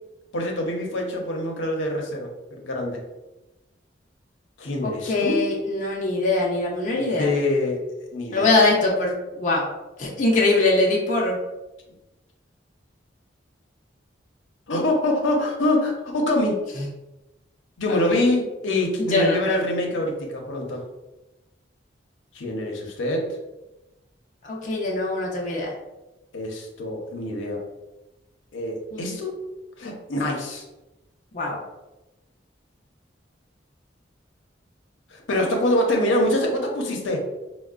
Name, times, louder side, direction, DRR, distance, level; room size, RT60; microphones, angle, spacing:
voice 1, 0.3-3.0 4.6-5.4 7.0-7.8 8.1-8.6 14.7-16.6 17.8-20.9 22.3-23.4 26.3-27.6 28.5-29.4 29.8-30.6 35.1-37.2, left 1 dB, 85° left, 0 dB, 0.6 m, -25 dB
voice 2, 4.8-7.3 8.3-9.7 10.0-11.4 19.0-19.4 24.4-25.7 28.9-29.2 31.3-31.6, left 2 dB, 40° left, -2 dB, 0.5 m, -22 dB
4.5 x 2.0 x 2.4 m, 1.0 s
head